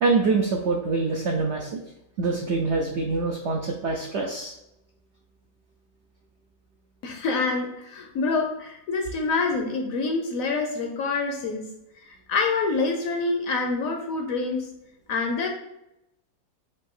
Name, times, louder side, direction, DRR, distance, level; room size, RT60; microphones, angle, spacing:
voice 1, 0.0-1.8 2.2-4.5, right 3 dB, 75° right, 1 dB, 0.6 m, -25 dB
voice 2, 7.0-11.7 12.1-14.7 15.1-15.5, left 3 dB, 70° left, 3 dB, 0.9 m, -26 dB
5.3 x 2.6 x 3.7 m, 0.85 s
omnidirectional pair, 1.8 m